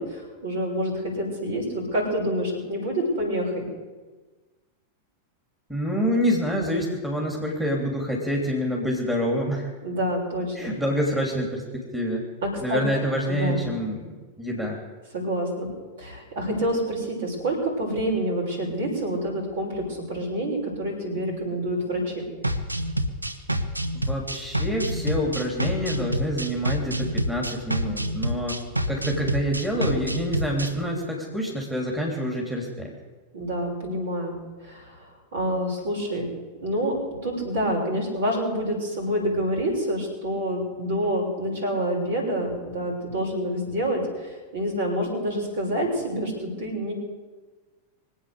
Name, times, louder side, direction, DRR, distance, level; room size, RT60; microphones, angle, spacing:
voice 1, 0.0-3.7 9.8-10.7 12.4-12.8 13.3-13.7 15.1-15.7 16.0-22.3 33.3-36.3 36.6-46.9, equal, 60° right, 0 dB, 6.3 m, -27 dB
voice 2, 5.7-9.7 10.5-12.3 12.6-14.8 23.9-28.6 28.9-32.9, equal, 5° right, -2 dB, 3.3 m, -27 dB
sound 1, 22.4-30.7, equal, 85° right, 1.0 m, -28 dB
24.5 x 8.7 x 6.9 m, 1.3 s
figure-of-eight pair, 90°, 0 cm